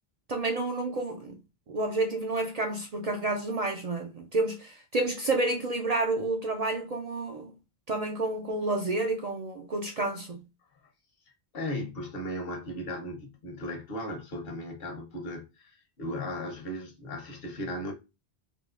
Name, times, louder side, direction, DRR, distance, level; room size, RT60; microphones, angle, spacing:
voice 1, 0.3-1.4 1.7-7.5 7.9-10.4, right 2 dB, 55° right, 0.5 m, -30 dB
voice 2, 11.5-17.9, left 1 dB, 65° left, 1.0 m, -36 dB
3.7 x 2.7 x 2.4 m
omnidirectional pair, 1.1 m